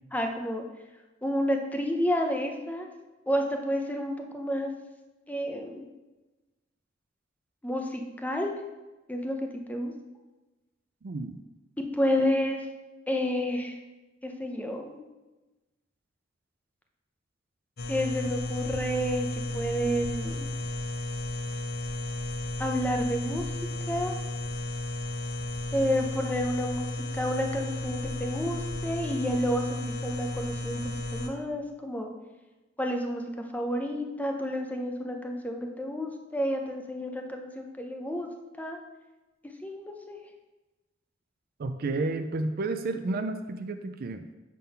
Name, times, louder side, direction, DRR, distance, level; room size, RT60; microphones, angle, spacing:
voice 1, 0.1-0.6 1.2-2.9 3.3-4.7 5.3-5.9 7.6-8.5 9.1-9.4 9.7-9.9 11.9-12.6 13.1-13.8 14.2-15.0 17.9-19.3 19.5-20.5 22.6-23.4 23.9-24.2 25.7-26.9 27.1-30.8 31.1-32.1 32.8-33.2 33.5-38.3 38.6-38.8 39.6-40.2, equal, 10° left, 3 dB, 0.7 m, -30 dB
voice 2, 11.0-11.4 41.6-44.2, right 3 dB, 50° right, 8 dB, 0.4 m, -31 dB
sound 1, 17.8-31.3, left 2 dB, 55° left, 0.7 m, -34 dB
7.5 x 3.8 x 5.6 m, 1.1 s
head